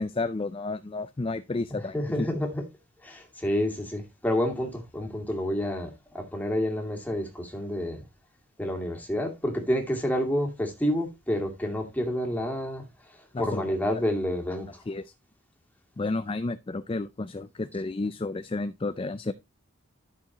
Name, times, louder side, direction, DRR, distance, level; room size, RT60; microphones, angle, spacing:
voice 1, 0.0-2.3 13.3-14.0 14.9-15.1 16.0-19.3, left 3 dB, 25° left, 0.4 m, -31 dB
voice 2, 1.7-2.6 3.0-8.0 8.6-14.8, equal, 5° left, 2.3 m, -29 dB
12.5 x 6.3 x 2.9 m
head